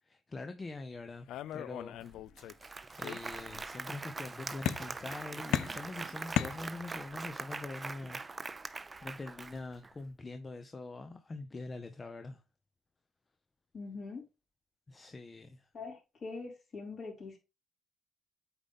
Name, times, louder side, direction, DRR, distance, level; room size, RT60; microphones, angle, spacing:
voice 1, 0.0-2.1 2.7-8.2 9.0-12.4 14.9-15.7, left 3 dB, 30° left, 0.6 m, -44 dB
sound 1, 1.3-2.6 3.0-3.7 4.7-5.2 5.5-7.1, left 11 dB, 85° left, 0.3 m, -36 dB
Applause, 2.0-2.1 2.4-9.9, right 3 dB, 25° right, 0.4 m, -42 dB
voice 2, 13.7-14.3 15.7-17.4, left 4 dB, 50° left, 3.7 m, -43 dB
8.0 x 3.8 x 3.5 m
cardioid pair, 90°, 0 cm